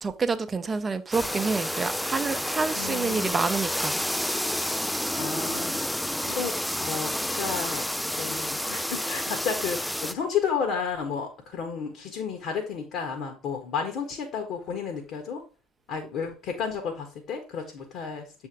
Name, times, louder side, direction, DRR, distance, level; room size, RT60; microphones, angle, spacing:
voice 1, 0.0-4.0, right 4 dB, 25° right, 10 dB, 0.7 m, -28 dB
sound 1, 1.1-10.1, left 1 dB, 5° left, 0.3 m, -30 dB
voice 2, 2.7-3.5 5.1-6.6 6.8-15.4 15.9-18.3, left 6 dB, 55° left, 3 dB, 1.4 m, -32 dB
7.4 x 3.6 x 4.7 m, 0.34 s
figure-of-eight pair, 55°, 0 cm